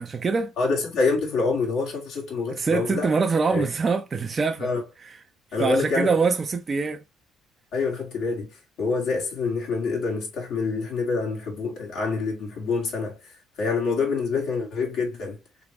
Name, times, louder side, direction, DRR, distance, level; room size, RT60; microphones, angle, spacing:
voice 1, 0.0-0.5 2.5-4.7 5.6-7.0, right 4 dB, 35° right, 0.6 m, -24 dB
voice 2, 0.6-3.2 3.5-3.6 4.6-4.8 5.5-6.1 7.7-15.4, left 4 dB, 70° left, 1.7 m, -26 dB
3.5 x 3.0 x 2.9 m
supercardioid pair, 70°, 0 cm